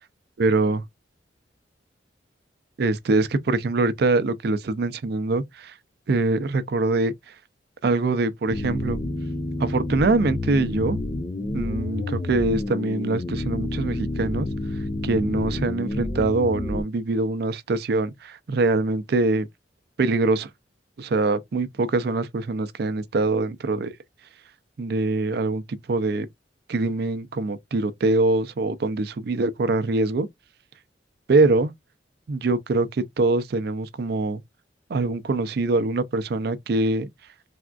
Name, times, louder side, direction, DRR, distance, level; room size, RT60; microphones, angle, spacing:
voice 1, 0.4-0.8 2.8-5.7 6.1-7.1 7.8-9.0 9.6-11.0 11.5-14.5 15.0-19.5 20.0-20.5 21.0-23.9 24.8-25.6 25.9-26.3 26.7-30.3 31.3-31.7 32.3-34.4 34.9-37.1, right 3 dB, 55° right, 0.4 m, -23 dB
sound 1, 8.5-16.8, left 2 dB, 25° left, 0.5 m, -29 dB
3.4 x 2.4 x 2.2 m
head